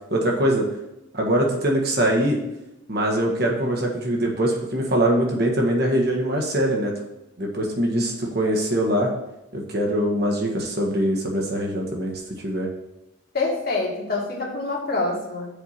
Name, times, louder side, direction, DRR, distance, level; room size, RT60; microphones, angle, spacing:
voice 1, 0.1-0.6 1.1-2.4 2.9-6.9 7.4-9.1 9.5-12.7, right 1 dB, 50° right, 0 dB, 1.6 m, -23 dB
voice 2, 13.3-15.5, left 3 dB, 50° left, -2 dB, 1.9 m, -26 dB
7.0 x 4.6 x 5.9 m, 0.94 s
head